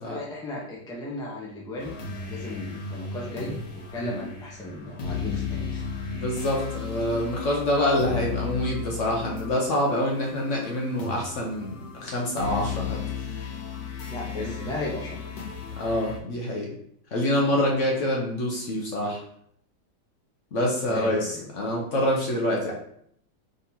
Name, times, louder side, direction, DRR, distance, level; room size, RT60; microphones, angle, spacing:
voice 1, 0.0-2.0 2.3-5.9 14.1-15.2 20.9-21.5, left 1 dB, 5° left, -4 dB, 0.4 m, -36 dB
sound 1, 1.8-16.2, left 6 dB, 90° left, 1.5 m, -35 dB
voice 2, 6.1-13.0 14.3-14.7 15.8-16.7 17.1-19.2 20.5-22.7, left 1 dB, 55° left, -1 dB, 0.9 m, -26 dB
3.8 x 3.7 x 2.8 m, 0.68 s
omnidirectional pair, 1.8 m